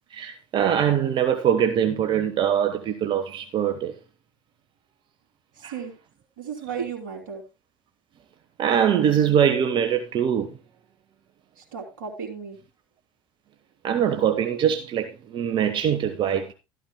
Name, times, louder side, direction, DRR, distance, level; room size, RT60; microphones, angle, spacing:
voice 1, 0.1-3.9 5.6-5.8 8.6-10.6 13.8-16.5, right 9 dB, 45° right, 1.2 m, -23 dB
voice 2, 6.4-7.4 11.7-12.6, right 6 dB, 75° right, 3.0 m, -34 dB
13.0 x 12.5 x 2.2 m
hypercardioid pair, 70°, 11 cm